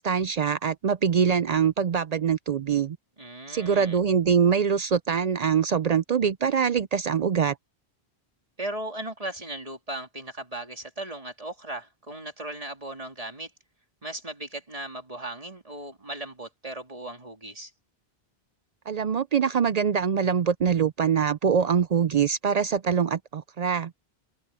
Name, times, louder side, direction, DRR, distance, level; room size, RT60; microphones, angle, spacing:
voice 1, 0.0-3.0 3.5-7.6 18.9-23.9, right 7 dB, 55° right, 0.5 m, -24 dB
voice 2, 3.2-4.0 8.6-13.5 14.0-17.7, right 1 dB, 35° right, 3.1 m, -37 dB
omnidirectional pair, 1.0 m